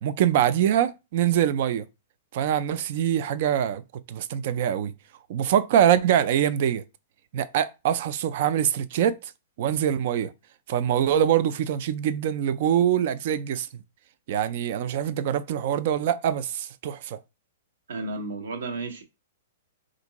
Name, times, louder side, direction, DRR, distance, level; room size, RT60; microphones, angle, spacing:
voice 1, 0.0-1.8 2.3-3.8 4.1-4.9 5.3-6.8 7.3-9.3 9.6-10.3 10.7-13.7 14.3-17.2, right 10 dB, 55° right, 0.3 m, -24 dB
voice 2, 17.9-19.0, right 3 dB, 80° right, 0.7 m, -32 dB
3.6 x 2.5 x 2.9 m
hypercardioid pair, 140°, 0 cm